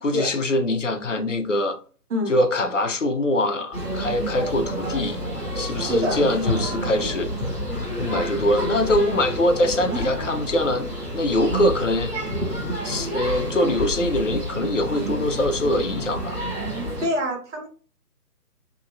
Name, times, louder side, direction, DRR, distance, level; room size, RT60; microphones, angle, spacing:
voice 1, 0.0-1.8 2.3-5.2 5.5-7.3 8.0-10.9 11.1-12.1 12.8-16.4, left 1 dB, 50° left, 0.6 m, -23 dB
sound 1, 3.7-17.1, equal, 5° right, 1.4 m, -29 dB
voice 2, 5.8-6.2 17.0-17.7, equal, 45° right, 1.3 m, -25 dB
3.6 x 2.8 x 2.6 m
figure-of-eight pair, 145°, 48 cm